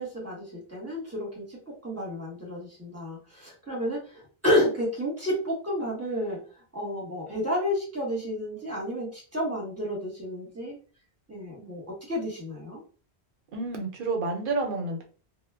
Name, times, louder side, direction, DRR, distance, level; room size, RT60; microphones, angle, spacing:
voice 1, 0.0-1.6 1.8-6.4 6.7-10.8 11.3-12.8, equal, 15° right, -4 dB, 1.0 m, -30 dB
voice 2, 13.5-15.1, right 3 dB, 60° right, 3 dB, 0.8 m, -29 dB
2.2 x 2.1 x 3.4 m, 0.38 s
omnidirectional pair, 1.0 m